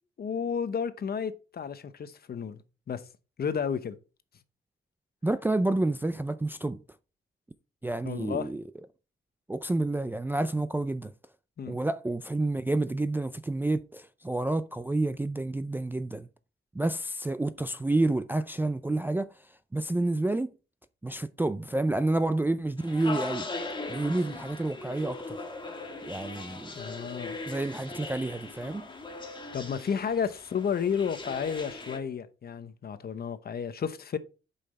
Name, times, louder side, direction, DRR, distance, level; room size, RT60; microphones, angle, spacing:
voice 1, 0.2-2.6 2.9-3.0 3.4-4.0 8.0-8.5 11.6-11.8 26.7-27.4 29.5-34.2, left 7 dB, 45° left, 0.9 m, -32 dB
voice 2, 5.2-6.8 7.8-8.6 9.5-11.1 11.7-16.3 16.7-19.3 19.7-20.5 21.0-23.5 23.9-25.4 26.0-26.7 27.5-28.9, right 2 dB, 10° right, 0.4 m, -29 dB
sound 1, 22.8-32.0, left 3 dB, 20° left, 1.5 m, -39 dB
8.2 x 5.7 x 4.2 m
wide cardioid pair, 140°, 21 cm